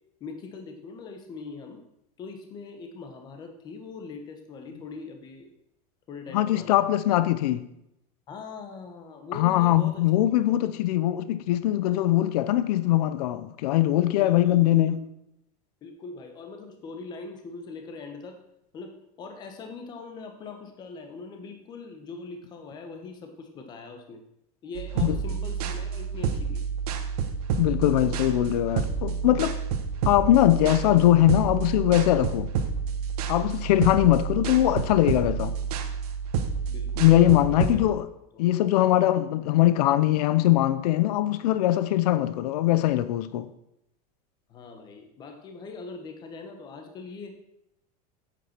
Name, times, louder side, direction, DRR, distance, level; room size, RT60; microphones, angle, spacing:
voice 1, 0.2-1.8 2.2-5.5 6.1-6.8 8.3-10.2 14.2-15.0 15.8-18.4 18.7-24.2 24.6-26.6 36.7-37.8 38.3-38.4 44.5-47.3, left 4 dB, 20° left, 1.2 m, -41 dB
voice 2, 6.3-7.7 9.3-15.0 25.0-25.2 27.6-29.6 30.0-32.5 33.3-35.6 37.0-38.1 38.4-43.5, left 14 dB, 85° left, 0.7 m, -21 dB
sound 1, 24.7-37.8, right 6 dB, 75° right, 1.3 m, -29 dB
8.5 x 8.3 x 5.9 m
supercardioid pair, 180°, 20 cm